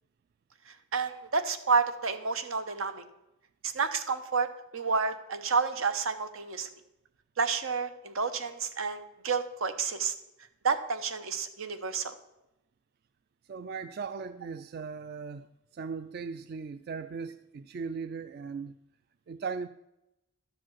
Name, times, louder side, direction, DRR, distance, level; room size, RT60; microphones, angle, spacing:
voice 1, 0.7-3.0 3.6-4.5 4.7-6.7 7.4-10.1 10.6-12.1, right 5 dB, 85° right, 0.9 m, -30 dB
voice 2, 13.5-18.8 19.3-19.7, right 5 dB, 50° right, 0.3 m, -38 dB
12.0 x 5.0 x 7.4 m
head